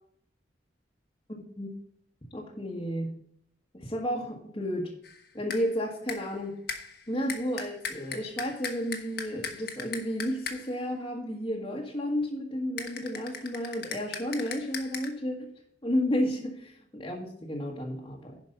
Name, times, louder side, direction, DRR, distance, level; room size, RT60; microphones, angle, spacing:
voice 1, 1.3-1.7 2.3-3.1 3.7-4.9 5.3-6.6 7.1-15.5 15.8-18.4, equal, 25° left, -4 dB, 1.4 m, -32 dB
sound 1, 5.0-5.2 5.5-5.7 6.1-6.4 6.7-10.8 12.8-15.1, left 5 dB, 65° left, 1.4 m, -39 dB
11.0 x 5.2 x 5.3 m, 0.67 s
head